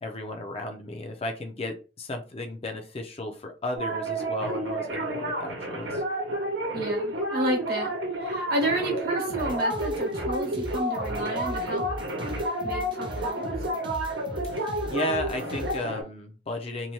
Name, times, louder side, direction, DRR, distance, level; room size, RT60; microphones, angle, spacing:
voice 1, 0.0-6.0 14.5-16.9, left 1 dB, 35° left, 5 dB, 0.5 m, -34 dB
sound 1, 3.8-16.0, right 1 dB, 75° right, 0.9 m, -30 dB
voice 2, 6.7-11.9 12.6-13.5, right 1 dB, 55° right, 0 dB, 1.0 m, -31 dB
sound 2, 9.3-15.8, right 1 dB, 25° right, 0.5 m, -38 dB
2.7 x 2.1 x 3.0 m, 0.33 s
head